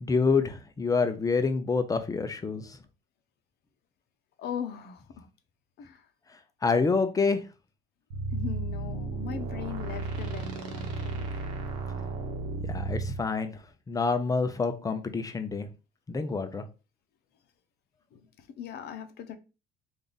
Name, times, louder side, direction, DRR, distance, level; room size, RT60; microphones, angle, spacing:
voice 1, 0.0-2.6 6.6-7.4 12.7-13.6 13.9-15.7 16.1-16.6, left 4 dB, 20° left, 0.6 m, -27 dB
voice 2, 4.4-5.3 5.8-6.0 8.3-11.3 18.1-19.4, left 8 dB, 55° left, 0.7 m, -39 dB
sound 1, 8.1-13.2, right 3 dB, 75° right, 1.0 m, -33 dB
3.4 x 2.6 x 3.9 m
cardioid pair, 105°, 19 cm